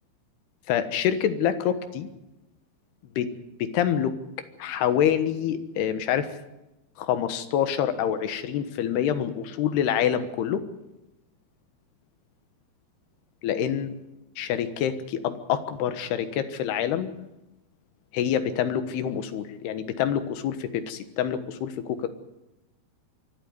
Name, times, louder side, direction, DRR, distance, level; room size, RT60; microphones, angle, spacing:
voice 1, 0.7-2.1 3.2-3.3 3.6-4.1 4.6-6.3 7.0-10.6 13.4-13.9 14.4-17.1 18.1-22.1, left 9 dB, 85° left, 10 dB, 3.4 m, -26 dB
24.5 x 13.0 x 9.6 m, 0.96 s
omnidirectional pair, 4.6 m